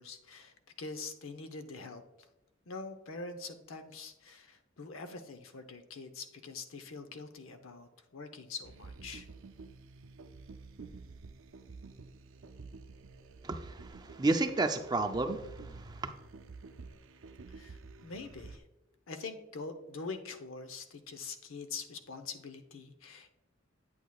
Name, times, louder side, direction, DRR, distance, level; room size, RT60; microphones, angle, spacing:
voice 1, 0.0-2.0 2.7-9.3 17.5-18.6 19.1-23.3, left 4 dB, 90° left, 8 dB, 0.8 m, -44 dB
sound 1, 8.6-18.6, right 3 dB, 75° right, 0.5 m, -50 dB
voice 2, 13.4-16.1, right 2 dB, 20° right, 7 dB, 0.5 m, -32 dB
8.7 x 8.3 x 2.3 m, 0.93 s
head